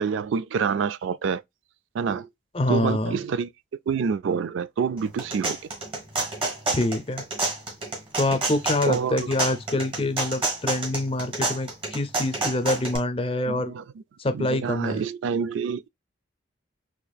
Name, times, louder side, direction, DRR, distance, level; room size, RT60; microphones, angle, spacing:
voice 1, 0.0-1.4 1.9-2.3 2.7-3.5 3.9-5.6 8.8-9.3 13.5-13.8 14.3-15.9, right 6 dB, 80° right, 0.3 m, -27 dB
voice 2, 2.5-3.2 6.7-7.2 8.2-13.7 14.2-15.0, left 2 dB, 30° left, 0.5 m, -26 dB
sound 1, 5.0-13.0, right 3 dB, 30° right, 1.4 m, -29 dB
4.2 x 2.9 x 2.3 m
head